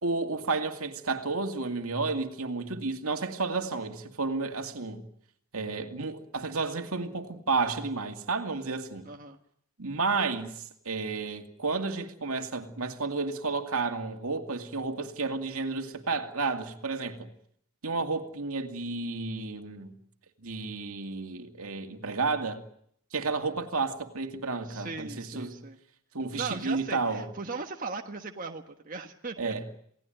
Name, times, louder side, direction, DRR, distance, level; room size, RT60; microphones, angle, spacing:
voice 1, 0.0-5.0 5.5-9.1 9.8-10.5 10.9-17.3 17.8-20.0 20.4-22.6 23.1-25.6 26.1-27.3 29.4-29.6, right 3 dB, 75° right, 2.4 m, -31 dB
voice 2, 9.0-9.4 24.6-25.8 26.3-29.5, right 4 dB, 40° right, 1.5 m, -38 dB
28.5 x 18.5 x 9.2 m
head